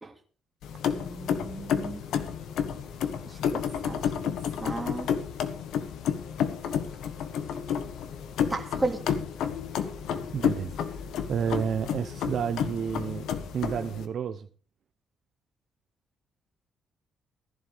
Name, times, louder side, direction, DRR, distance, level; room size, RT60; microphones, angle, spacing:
sound 1, 0.6-14.1, left 8 dB, 80° left, 1.3 m, -31 dB
voice 1, 0.8-2.0 3.3-5.1 8.5-9.0, right 2 dB, 15° right, 2.6 m, -35 dB
voice 2, 10.3-10.7 11.3-13.3 13.5-14.5, right 7 dB, 55° right, 0.7 m, -30 dB
15.5 x 11.0 x 3.4 m
cardioid pair, 105°, 0 cm